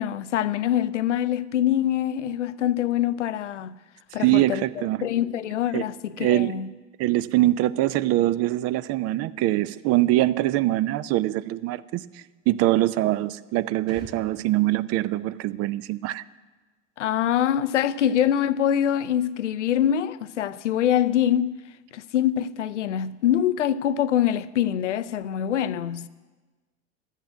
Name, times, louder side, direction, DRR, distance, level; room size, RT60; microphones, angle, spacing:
voice 1, 0.0-3.7 4.1-4.6 5.0-6.7 17.0-21.6 21.9-26.1, left 10 dB, 85° left, 0.5 m, -24 dB
voice 2, 4.2-5.0 5.7-5.9 6.2-6.6 7.0-16.2, right 16 dB, 45° right, 0.5 m, -23 dB
sound 1, 13.9-17.4 17.6-17.7, left 1 dB, 60° right, 5.2 m, -52 dB
12.5 x 8.2 x 7.6 m
hypercardioid pair, 80°, 35 cm